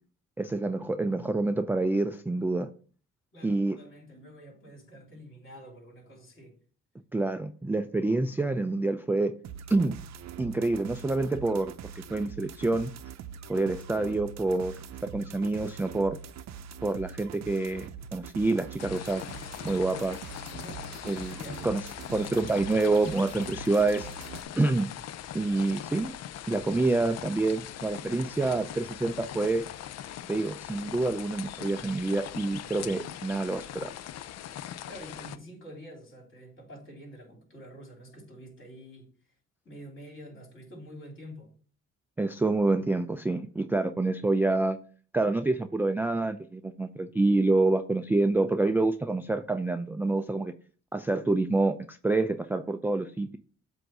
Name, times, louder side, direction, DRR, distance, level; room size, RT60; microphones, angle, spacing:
voice 1, 0.4-2.7 3.4-3.8 7.1-9.3 9.7-10.0 10.4-11.7 12.1-12.9 13.5-16.2 16.8-19.2 19.6-20.2 21.1-21.4 21.6-21.8 22.1-24.1 24.6-24.9 25.3-26.1 26.5-29.7 30.3-33.9 42.2-44.8 45.1-50.5 50.9-53.4, right 2 dB, 5° right, 0.3 m, -27 dB
voice 2, 3.3-6.6 20.6-21.7 28.3-28.7 34.9-39.1 39.6-41.5, equal, 40° left, 3.3 m, -47 dB
sound 1, 9.4-24.4, right 8 dB, 60° right, 0.6 m, -43 dB
sound 2, 18.8-35.4, left 11 dB, 60° left, 0.5 m, -41 dB
7.8 x 2.6 x 6.0 m
cardioid pair, 90°, 30 cm